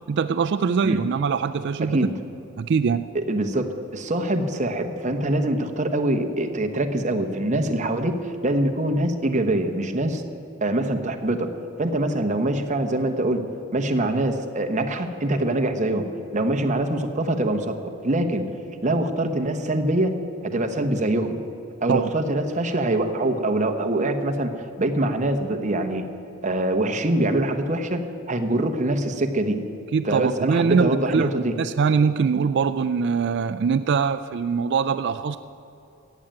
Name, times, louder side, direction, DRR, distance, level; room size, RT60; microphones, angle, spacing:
voice 1, 0.1-2.1 2.6-3.1 21.9-22.1 29.9-31.3 31.6-35.4, right 5 dB, 55° right, 11 dB, 0.3 m, -22 dB
voice 2, 1.8-2.1 3.1-10.2 10.6-11.5 11.8-13.4 13.7-16.0 16.3-17.7 18.0-18.4 18.8-20.2 20.4-21.4 21.8-26.0 26.4-28.0 28.3-29.6 30.0-31.5, right 1 dB, 35° right, 5 dB, 1.1 m, -24 dB
14.5 x 8.8 x 9.0 m, 2.8 s
head